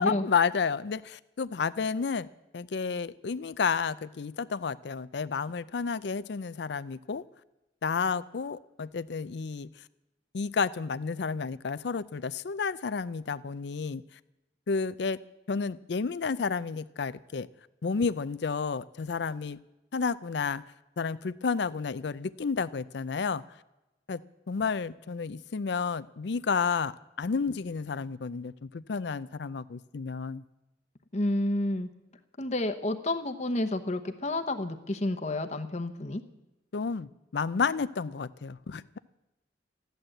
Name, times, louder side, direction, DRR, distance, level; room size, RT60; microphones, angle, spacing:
voice 1, 0.0-2.3 2.5-7.2 7.8-9.7 10.3-14.0 14.7-15.2 15.5-17.5 17.8-19.6 19.9-20.6 21.0-23.4 24.1-24.2 24.5-30.4 36.7-39.0, left 5 dB, 65° left, 15 dB, 0.5 m, -31 dB
voice 2, 31.1-31.9 32.4-36.2, left 1 dB, 35° left, 7 dB, 0.9 m, -30 dB
14.5 x 11.5 x 7.8 m, 0.96 s
head